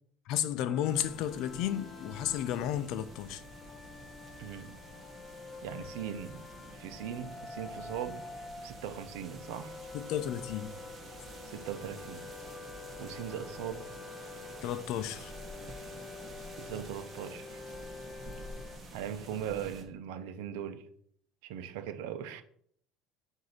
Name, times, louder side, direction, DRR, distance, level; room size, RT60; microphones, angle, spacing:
voice 1, 0.3-3.4 9.9-10.7 14.6-15.3, left 11 dB, 65° left, 0.5 m, -33 dB
sound 1, 0.7-18.8, left 4 dB, 20° left, 0.5 m, -47 dB
sound 2, 0.9-19.8, right 1 dB, 20° right, 1.3 m, -49 dB
voice 2, 4.4-4.8 5.6-6.4 6.7-8.2 8.6-9.8 11.5-12.3 13.0-13.9 16.6-17.6 18.9-20.9 21.4-22.4, right 9 dB, 85° right, 0.7 m, -40 dB
7.8 x 2.8 x 5.6 m
cardioid pair, 135°, 0 cm